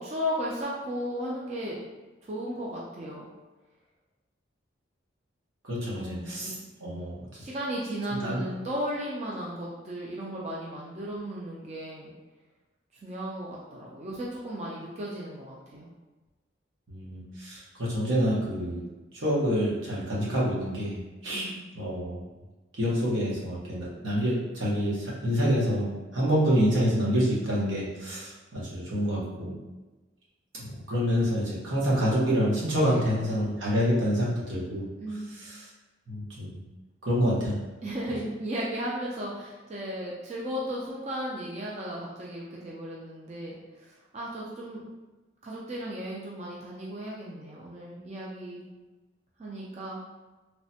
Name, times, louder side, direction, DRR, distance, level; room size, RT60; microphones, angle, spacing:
voice 1, 0.0-1.8 2.2-3.3 5.9-7.0 7.4-12.1 13.0-15.9 21.3-21.7 32.8-33.2 35.0-35.3 37.8-44.8 45.4-48.7 49.4-50.0, equal, 35° right, -5 dB, 0.4 m, -35 dB
voice 2, 5.6-6.5 6.8-7.1 8.1-8.4 16.9-18.8 19.1-21.0 21.2-22.2 22.8-29.5 30.6-34.9 36.1-36.6 37.1-37.5, equal, 85° right, -6 dB, 1.0 m, -27 dB
3.1 x 2.1 x 2.7 m, 1.2 s
head